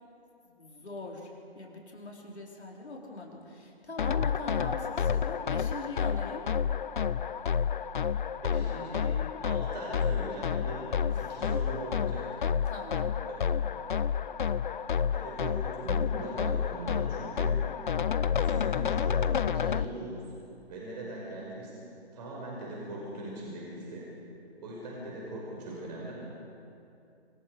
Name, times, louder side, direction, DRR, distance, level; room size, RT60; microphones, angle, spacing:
voice 1, 0.5-6.5 11.1-11.5 12.7-13.2, left 2 dB, 75° left, -2 dB, 4.9 m, -41 dB
sound 1, 4.0-19.8, left 7 dB, 50° left, 0.6 m, -30 dB
voice 2, 8.4-9.2 9.4-12.4 13.2-13.6 15.1-17.6 18.3-20.2 20.7-21.7 22.1-24.1 24.6-26.1, right 1 dB, 40° right, -4 dB, 5.8 m, -40 dB
25.0 x 21.5 x 5.0 m, 2.6 s
figure-of-eight pair, 145°, 33 cm